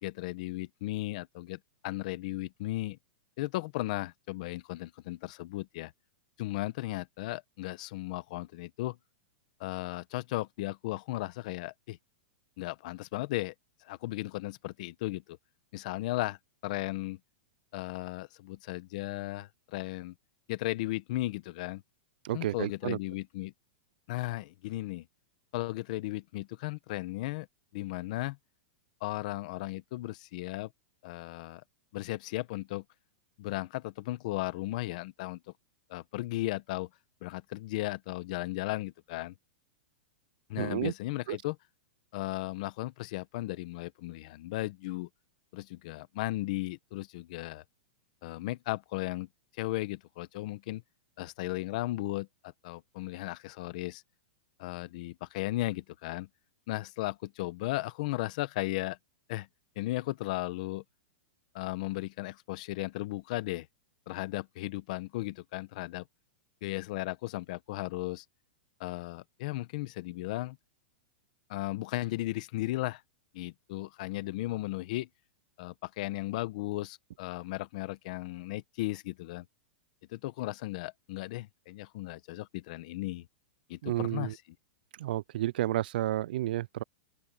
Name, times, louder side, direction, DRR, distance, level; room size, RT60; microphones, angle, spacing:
voice 1, 0.0-3.0 3.4-5.9 6.4-9.0 9.6-12.0 12.6-13.5 13.8-15.4 15.7-16.4 16.6-17.2 17.7-20.1 20.5-21.8 22.3-23.5 24.1-25.1 25.5-27.5 27.7-28.4 29.0-30.7 31.0-31.6 31.9-32.8 33.4-35.4 35.9-36.9 37.2-39.3 40.5-41.6 42.1-45.1 45.5-47.6 48.2-49.3 49.6-50.8 51.2-54.0 54.6-56.3 56.7-59.0 59.3-59.5 59.8-60.8 61.5-63.7 64.1-66.0 66.6-68.2 68.8-70.6 71.5-73.0 73.3-75.1 75.6-79.4 80.1-83.3 83.7-84.4, left 18 dB, 40° left, 1.0 m, -35 dB
voice 2, 22.2-23.0 40.6-40.9 41.3-41.4 83.8-84.3 85.0-86.8, right 14 dB, 55° right, 0.4 m, -31 dB
open air
supercardioid pair, 170°, 6 cm